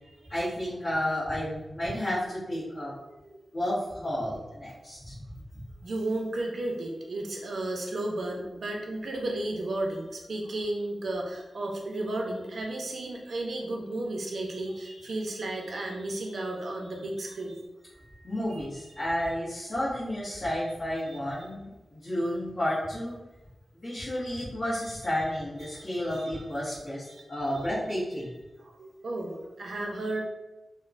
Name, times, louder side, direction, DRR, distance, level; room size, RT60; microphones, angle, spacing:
voice 1, 0.3-2.9 3.5-5.2 5.5-5.6 18.2-23.2 23.7-28.3, left 1 dB, 40° left, -12 dB, 0.9 m, -31 dB
voice 2, 5.8-17.6 17.9-19.1 25.6-25.9 26.1-26.4 27.1-27.7 28.6-30.2, right 2 dB, 70° right, 1 dB, 0.5 m, -34 dB
3.0 x 2.0 x 2.4 m, 1.1 s
wide cardioid pair, 95°, 0 cm